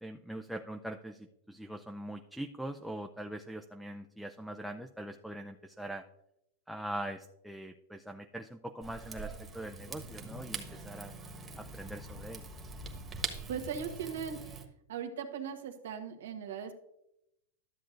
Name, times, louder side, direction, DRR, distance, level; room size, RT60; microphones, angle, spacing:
voice 1, 0.0-6.0 6.7-11.1 11.6-12.5, right 1 dB, ahead, 3 dB, 0.5 m, -42 dB
Rain / Fire, 8.8-14.6, right 4 dB, 20° right, 1.3 m, -43 dB
voice 2, 13.5-14.4 14.9-16.7, right 7 dB, 80° right, 4 dB, 1.3 m, -38 dB
12.5 x 7.5 x 2.6 m, 0.82 s
hypercardioid pair, 125°, 0 cm